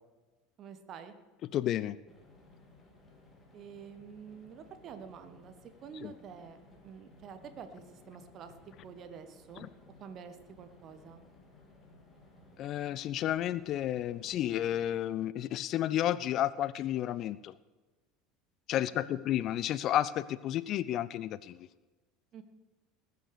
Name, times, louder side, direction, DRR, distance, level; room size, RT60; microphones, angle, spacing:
voice 1, 0.6-1.1 3.5-6.6 6.8-8.5 8.8-9.7 10.0-11.2 18.9-19.2 22.3-22.4, right 7 dB, 40° right, 9 dB, 1.3 m, -48 dB
voice 2, 1.5-2.0 6.0-6.1 9.6-9.7 12.6-17.5 18.7-21.7, left 12 dB, 45° left, 18 dB, 0.4 m, -31 dB
sound 1, 2.1-14.9, left 2 dB, 20° left, 3.2 m, -59 dB
19.5 x 6.8 x 6.5 m, 1.2 s
figure-of-eight pair, 70°, 0 cm